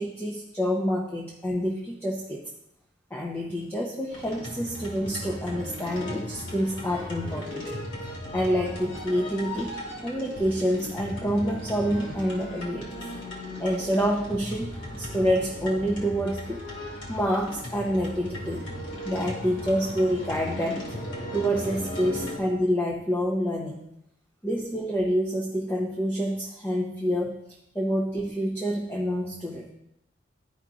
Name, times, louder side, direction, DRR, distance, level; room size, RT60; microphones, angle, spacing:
voice 1, 0.0-2.4 3.1-7.7 8.0-13.0 13.6-16.6 17.1-18.7 19.0-21.0 21.3-23.8 24.4-27.3 27.7-29.7, equal, 10° left, -3 dB, 0.8 m, -27 dB
sound 1, 4.1-22.4, left 1 dB, 90° left, 2.5 m, -37 dB
13.0 x 5.3 x 2.5 m, 0.81 s
head